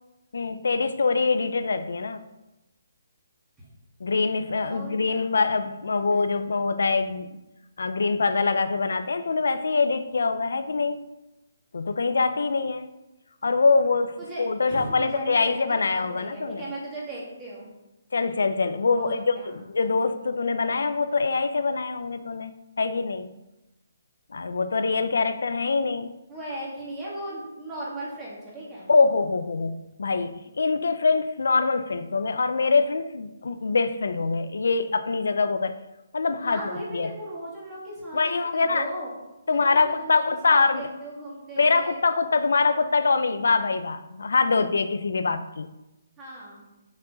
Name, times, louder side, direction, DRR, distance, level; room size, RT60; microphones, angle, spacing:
voice 1, 0.3-2.2 4.0-7.4 7.8-11.0 11.7-12.9 13.4-16.6 18.1-23.4 24.3-26.1 28.9-35.7 36.1-37.1 38.1-38.9 39.5-40.9 41.6-45.7, left 4 dB, 75° left, 10 dB, 0.6 m, -24 dB
voice 2, 4.6-5.4 14.2-17.7 19.0-19.6 26.3-28.9 36.4-39.1 39.5-42.0 46.2-46.6, right 1 dB, 10° right, -6 dB, 2.2 m, -37 dB
7.1 x 6.6 x 5.4 m, 0.98 s
hypercardioid pair, 175°, 0 cm